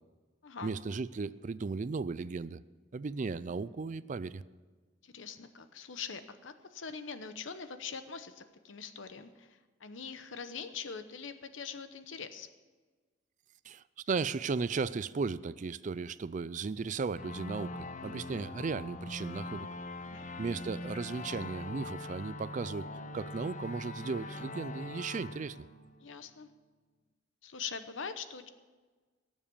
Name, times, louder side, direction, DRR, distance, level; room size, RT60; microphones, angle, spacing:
voice 1, 0.6-2.6 2.9-4.4 13.6-19.7 20.4-22.9 23.1-25.7, right 4 dB, 40° right, 17 dB, 0.4 m, -36 dB
voice 2, 5.0-12.5 20.0-20.3 26.0-26.5 27.4-28.5, left 6 dB, 80° left, 10 dB, 0.9 m, -43 dB
sound 1, 17.2-26.5, left 2 dB, 40° left, 0.7 m, -42 dB
18.0 x 7.4 x 7.0 m, 1.4 s
head